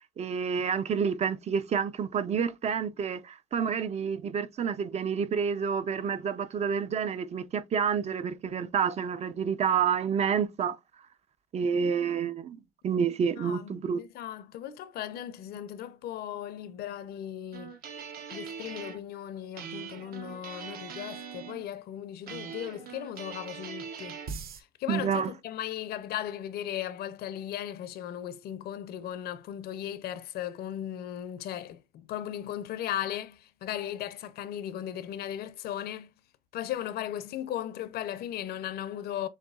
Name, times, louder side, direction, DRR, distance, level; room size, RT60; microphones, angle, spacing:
voice 1, 0.2-10.8 11.5-14.0 24.9-25.3, right 7 dB, 40° right, 0.5 m, -29 dB
voice 2, 13.4-17.7 18.3-24.2 24.8-36.1 36.5-39.3, left 11 dB, 70° left, 0.6 m, -37 dB
sound 1, 17.5-19.0 19.6-21.6 22.3-24.6, right 6 dB, 60° right, 0.9 m, -41 dB
6.6 x 2.7 x 2.3 m
cardioid pair, 110°, 17 cm